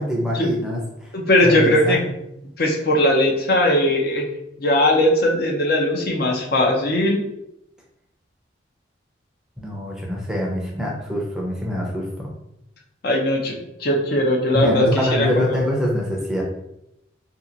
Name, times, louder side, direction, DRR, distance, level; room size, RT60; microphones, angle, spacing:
voice 1, 0.0-1.1 1.4-2.1 9.6-12.3 14.5-16.4, left 1 dB, 5° right, -3 dB, 0.5 m, -24 dB
voice 2, 1.1-2.1 2.6-4.3 4.6-7.2 13.0-15.7, left 1 dB, 50° left, 0 dB, 0.6 m, -19 dB
2.8 x 2.4 x 3.8 m, 0.84 s
head